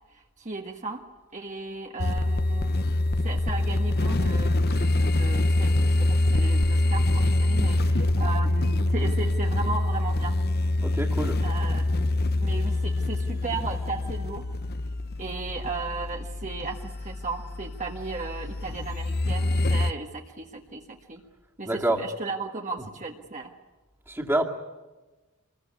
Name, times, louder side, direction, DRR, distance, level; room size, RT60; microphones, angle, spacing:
voice 1, 0.1-1.0 1.3-2.8 3.2-10.4 11.4-11.9 12.4-14.5 15.2-21.2 21.6-23.5, right 3 dB, 35° right, 1 dB, 1.6 m, -36 dB
sound 1, 2.0-19.9, left 1 dB, 50° left, 0.8 m, -25 dB
voice 2, 10.8-11.4 21.6-22.1 24.1-24.4, right 1 dB, 10° right, 1 dB, 2.3 m, -26 dB
26.0 x 21.0 x 9.6 m, 1.2 s
head